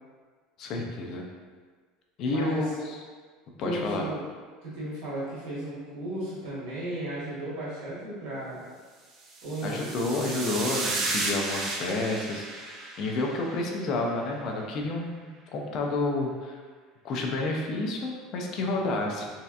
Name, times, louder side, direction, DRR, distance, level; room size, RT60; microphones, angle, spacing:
voice 1, 0.6-1.3 2.2-3.0 3.6-4.1 9.6-16.6 17.0-19.3, left 2 dB, 45° left, 0 dB, 0.4 m, -30 dB
voice 2, 2.2-2.7 3.6-4.2 4.6-8.6 9.4-10.6, right 1 dB, 70° right, -7 dB, 1.3 m, -35 dB
sound 1, 9.3-13.8, right 2 dB, 40° right, 0.5 m, -33 dB
3.2 x 2.7 x 2.4 m, 1.5 s
cardioid pair, 150°, 0 cm